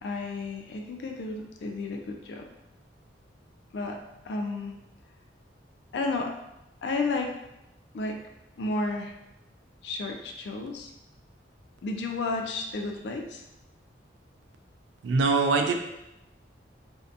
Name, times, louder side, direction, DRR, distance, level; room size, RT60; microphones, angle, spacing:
voice 1, 0.0-2.5 3.7-4.0 4.3-4.7 5.9-6.3 6.8-7.4 7.9-8.2 8.6-9.1 9.8-10.9 11.8-13.4, left 3 dB, 65° left, 3 dB, 0.3 m, -32 dB
voice 2, 15.0-15.8, right 4 dB, 75° right, 5 dB, 0.3 m, -23 dB
2.6 x 2.2 x 2.4 m, 0.91 s
head